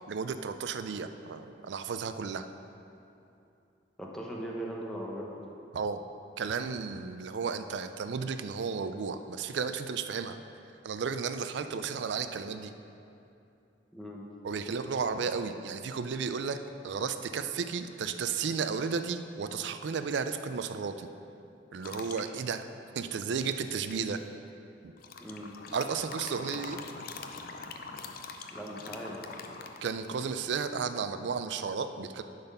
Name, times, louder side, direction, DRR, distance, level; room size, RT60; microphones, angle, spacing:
voice 1, 0.1-2.5 5.7-6.0 6.4-10.4 10.8-12.7 14.4-16.6 16.8-21.1 21.7-22.6 22.9-24.2 24.8-24.9 25.7-26.8 29.8-32.2, right 5 dB, 70° right, 9 dB, 0.4 m, -33 dB
voice 2, 4.0-5.3 13.9-14.3 25.2-25.5 28.5-29.2, right 1 dB, 5° left, -3 dB, 0.9 m, -39 dB
sound 1, 21.8-22.3 23.4-24.2 25.0-30.3, left 4 dB, 50° left, 0.5 m, -44 dB
10.5 x 4.0 x 5.4 m, 2.7 s
head